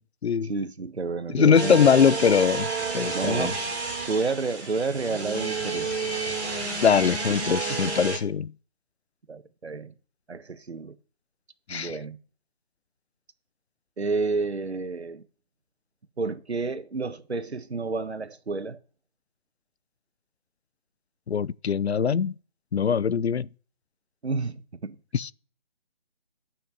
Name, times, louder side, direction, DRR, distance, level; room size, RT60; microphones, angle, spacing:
voice 1, 0.4-1.8 3.1-3.6 4.0-6.1 7.7-7.9 9.3-9.9 10.3-10.9 11.7-12.2 14.0-15.2 16.2-18.8 24.2-25.0, right 4 dB, 85° right, 1.5 m, -30 dB
voice 2, 1.3-3.5 6.8-8.5 11.7-11.9 21.3-22.3 22.7-23.5 25.1-25.3, left 7 dB, 80° left, 0.6 m, -22 dB
sound 1, 1.5-8.2, right 4 dB, 5° right, 1.2 m, -30 dB
11.5 x 5.8 x 7.1 m
figure-of-eight pair, 170°, 32 cm